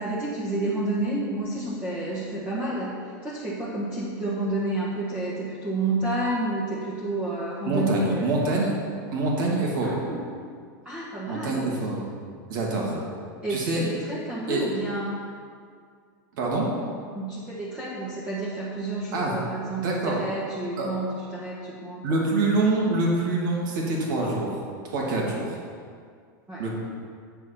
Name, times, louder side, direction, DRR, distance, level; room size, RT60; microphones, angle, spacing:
voice 1, 0.0-8.3 9.8-10.3 10.8-11.7 12.9-13.1 13.4-15.2 17.1-22.3 26.5-26.7, right 2 dB, 10° right, -8 dB, 1.5 m, -30 dB
voice 2, 7.7-8.7 9.1-10.0 11.3-12.0 12.5-13.0 13.5-13.9 14.5-14.6 16.4-16.7 19.1-19.3 19.8-20.2 20.8-20.9 22.0-24.5 24.9-25.6 26.6-26.7, right 2 dB, 70° right, -2 dB, 2.7 m, -25 dB
8.1 x 6.4 x 6.0 m, 2.1 s
supercardioid pair, 145°, 11 cm